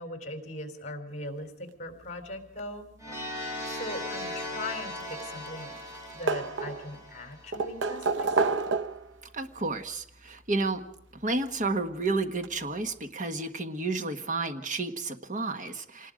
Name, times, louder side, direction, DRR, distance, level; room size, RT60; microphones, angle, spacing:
voice 1, 0.0-2.9 3.6-5.7 6.1-8.6, left 1 dB, 40° left, 6 dB, 3.8 m, -39 dB
sound 1, 3.0-7.8, left 1 dB, 15° right, 6.3 m, -38 dB
sound 2, 4.9-5.6 5.9-7.0 7.5-9.2 10.4-10.5 12.0-12.1 12.4-12.5, right 4 dB, 70° right, 0.8 m, -29 dB
voice 2, 9.3-10.8 11.1-16.1, right 3 dB, 45° right, 8 dB, 1.5 m, -31 dB
26.5 x 19.5 x 5.1 m, 0.78 s
head